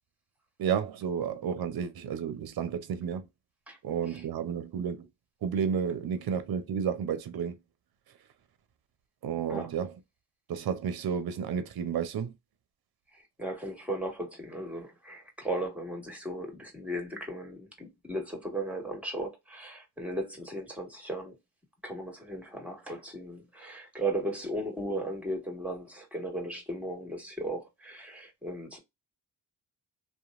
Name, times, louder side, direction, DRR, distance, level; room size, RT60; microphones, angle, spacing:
voice 1, 0.6-3.3 3.8-5.1 5.4-7.6 9.2-9.9 10.5-12.3, right 7 dB, 55° right, 0.7 m, -31 dB
voice 2, 13.1-21.4 21.8-28.8, right 1 dB, 5° right, 1.6 m, -36 dB
2.8 x 2.2 x 2.4 m
supercardioid pair, 45°, 44 cm